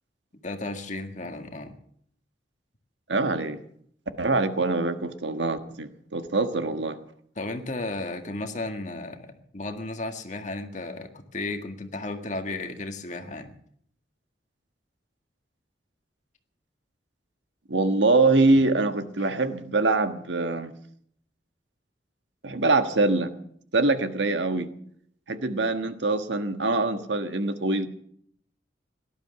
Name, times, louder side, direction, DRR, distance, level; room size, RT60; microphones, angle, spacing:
voice 1, 0.4-1.7 7.4-13.5, left 2 dB, 40° left, 6 dB, 1.8 m, -34 dB
voice 2, 3.1-3.6 4.2-7.0 17.7-20.7 22.4-23.3 23.7-24.7 25.3-27.9, right 3 dB, 80° right, 9 dB, 1.5 m, -24 dB
17.5 x 12.0 x 6.8 m, 0.65 s
head